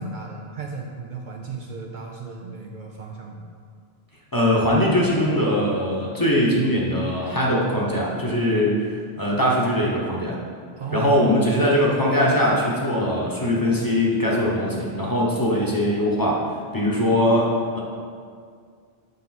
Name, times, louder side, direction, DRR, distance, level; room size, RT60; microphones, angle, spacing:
voice 1, 0.0-3.5 10.8-11.1, right 4 dB, 55° right, 0 dB, 0.6 m, -35 dB
voice 2, 4.3-8.9 9.2-10.4 10.9-16.4 16.7-17.8, equal, 20° left, -4 dB, 1.0 m, -21 dB
6.7 x 5.2 x 4.1 m, 2.1 s
omnidirectional pair, 1.1 m